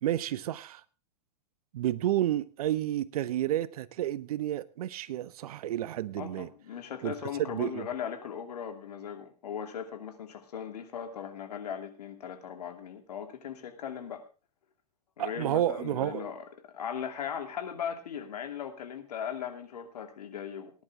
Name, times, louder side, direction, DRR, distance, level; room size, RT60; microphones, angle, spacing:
voice 1, 0.0-0.8 1.7-6.5 7.0-7.1 7.4-7.9 15.2-16.3, right 12 dB, 65° right, 0.9 m, -30 dB
voice 2, 6.2-14.2 15.2-20.7, left 8 dB, 70° left, 2.6 m, -38 dB
18.5 x 10.5 x 3.5 m
hypercardioid pair, 110°, 21 cm